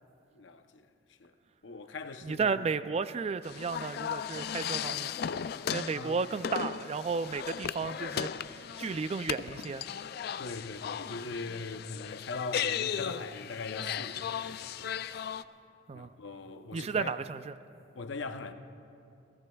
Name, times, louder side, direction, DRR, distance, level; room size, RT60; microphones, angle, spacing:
voice 1, 0.3-0.9 1.2-1.3 1.6-2.6 5.9-6.2 7.5-7.6 10.4-15.3 15.9-17.1 17.9-18.5, left 3 dB, 80° left, 0.7 m, -41 dB
voice 2, 2.2-5.1 5.7-9.8 15.9-16.1 16.7-17.5, right 5 dB, 35° right, 0.3 m, -33 dB
sound 1, 3.4-15.4, left 8 dB, 55° left, 0.3 m, -36 dB
29.0 x 16.5 x 2.3 m
head